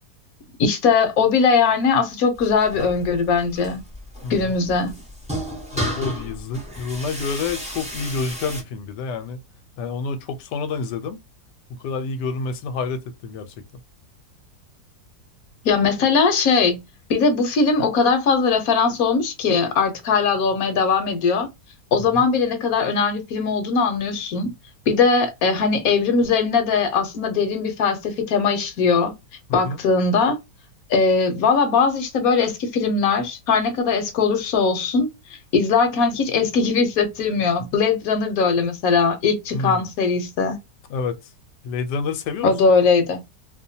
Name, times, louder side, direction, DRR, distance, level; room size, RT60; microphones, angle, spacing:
voice 1, 0.6-3.8 4.3-4.9 15.6-16.8 17.1-21.5 21.9-24.5 24.9-29.1 29.5-30.4 30.9-35.1 35.5-40.6 42.4-43.2, left 5 dB, 65° left, 1.1 m, -20 dB
sound 1, 2.3-8.6, equal, 10° right, 0.3 m, -33 dB
voice 2, 5.7-9.4 9.8-11.2 11.7-13.5 22.0-22.3 29.5-29.8 39.5-39.9 40.9-41.3 41.6-42.5, left 4 dB, 85° left, 1.2 m, -28 dB
2.8 x 2.2 x 2.6 m
omnidirectional pair, 1.8 m